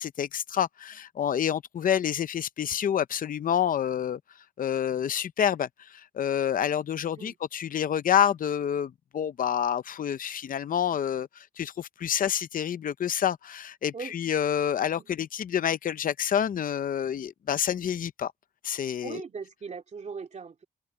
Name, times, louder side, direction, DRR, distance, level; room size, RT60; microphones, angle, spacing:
voice 1, 0.0-4.2 4.6-18.3 18.6-19.2, left 9 dB, 55° left, 0.6 m, -28 dB
voice 2, 19.0-20.6, right 5 dB, 45° right, 2.5 m, -39 dB
open air
wide cardioid pair, 175°, 17 cm